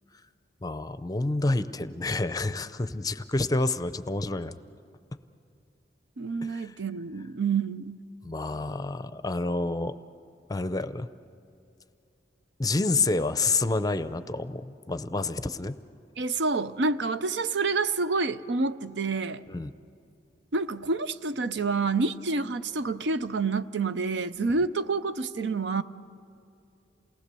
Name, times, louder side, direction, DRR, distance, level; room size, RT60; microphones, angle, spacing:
voice 1, 0.6-4.5 6.4-6.7 8.2-9.9 10.5-11.1 12.6-15.8 19.5-19.7, left 3 dB, 20° left, 0.6 m, -28 dB
voice 2, 6.2-8.0 16.2-19.4 20.5-25.8, right 4 dB, 75° right, 0.6 m, -28 dB
28.5 x 19.0 x 6.8 m
head